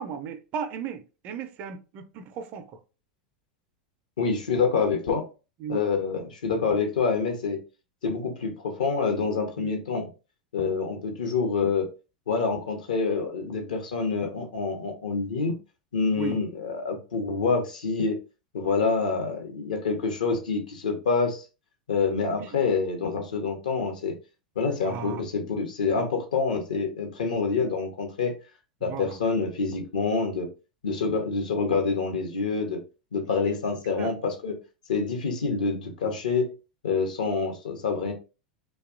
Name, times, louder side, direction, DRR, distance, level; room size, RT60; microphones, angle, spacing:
voice 1, 0.0-2.6 5.6-5.9 9.6-9.7 16.2-16.4 22.4-22.6 24.8-25.5 27.2-27.4 28.8-29.2 33.9-34.1, right 7 dB, 45° right, 0.4 m, -36 dB
voice 2, 4.2-5.3 5.7-7.6 8.0-10.1 10.5-11.9 12.3-15.5 15.9-18.2 18.5-21.4 21.9-24.1 24.6-28.3 28.8-30.5 30.8-32.8 33.1-34.6 34.9-36.5 36.8-38.1, left 4 dB, 75° left, 0.7 m, -27 dB
2.8 x 2.2 x 2.4 m
figure-of-eight pair, 90°, 4 cm